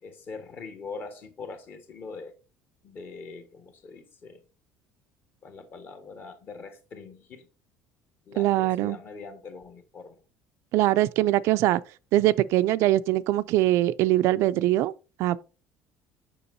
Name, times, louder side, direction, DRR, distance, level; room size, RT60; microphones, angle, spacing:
voice 1, 0.0-2.4 2.8-4.4 5.4-7.5 8.2-10.2, left 4 dB, 40° left, 1.4 m, -42 dB
voice 2, 8.4-9.0 10.7-11.8 12.1-14.9 15.2-15.4, right 15 dB, 65° right, 0.3 m, -22 dB
6.9 x 6.1 x 2.6 m
cardioid pair, 145°, 5 cm